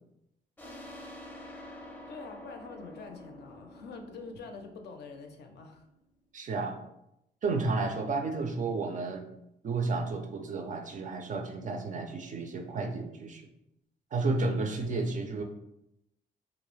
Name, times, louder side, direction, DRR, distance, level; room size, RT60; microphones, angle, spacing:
sound 1, 0.6-5.9, left 1 dB, 10° left, 0.6 m, -48 dB
voice 1, 2.1-5.9, left 4 dB, 55° left, 4 dB, 0.4 m, -45 dB
voice 2, 6.3-6.8 7.4-9.3 9.6-13.4 14.1-15.4, right 3 dB, 40° right, 4 dB, 0.4 m, -32 dB
2.3 x 2.0 x 3.0 m, 0.83 s
cardioid pair, 90°, 20 cm